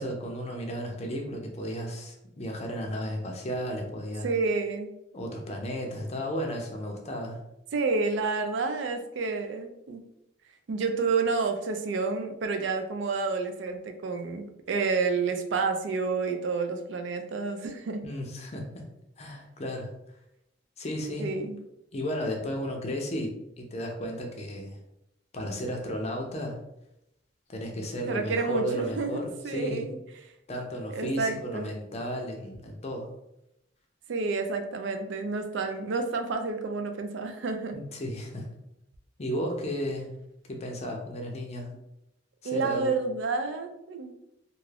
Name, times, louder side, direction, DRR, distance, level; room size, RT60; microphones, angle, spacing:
voice 1, 0.0-4.3 5.1-7.4 18.0-18.8 19.2-19.9 20.8-21.3 21.9-23.3 23.6-24.8 25.3-26.6 27.5-29.9 30.5-33.1 37.7-38.5 39.2-40.1 40.5-41.7 42.4-42.9, equal, 35° left, 2 dB, 0.5 m, -34 dB
voice 2, 4.2-4.9 7.7-10.0 10.7-18.0 21.2-21.6 28.1-30.0 30.9-31.7 34.1-37.8 42.4-44.1, right 4 dB, 65° right, 6 dB, 0.4 m, -29 dB
2.4 x 2.3 x 3.2 m, 0.84 s
head